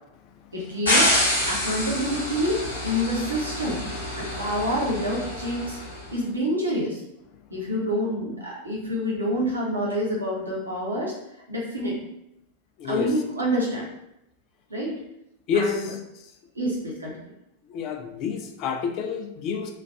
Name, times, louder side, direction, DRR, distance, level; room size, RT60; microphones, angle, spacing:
voice 1, 0.5-2.6 2.8-3.8 4.1-5.8 6.1-7.0 7.5-11.1 11.5-12.0 12.9-13.8 14.7-15.0 15.5-15.8 16.5-17.1, equal, 80° right, -4 dB, 0.9 m, -27 dB
sound 1, 0.9-6.0, left 1 dB, 75° left, 1.2 m, -27 dB
voice 2, 12.8-13.1 15.5-16.0 17.7-19.7, left 6 dB, 40° left, 3 dB, 0.4 m, -28 dB
3.1 x 2.3 x 2.3 m, 0.83 s
figure-of-eight pair, 90°, 0 cm